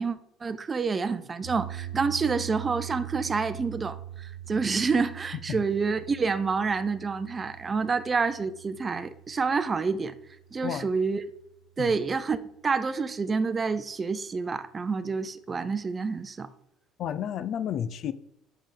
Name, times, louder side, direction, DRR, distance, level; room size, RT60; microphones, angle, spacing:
voice 1, 0.0-10.2 10.5-11.2 11.8-16.5, right 4 dB, 30° right, 0.6 m, -28 dB
sound 1, 1.4-11.6, right 12 dB, 90° right, 1.2 m, -42 dB
voice 2, 17.0-18.1, left 9 dB, 55° left, 0.4 m, -31 dB
6.0 x 5.3 x 5.1 m
hypercardioid pair, 75°, 0 cm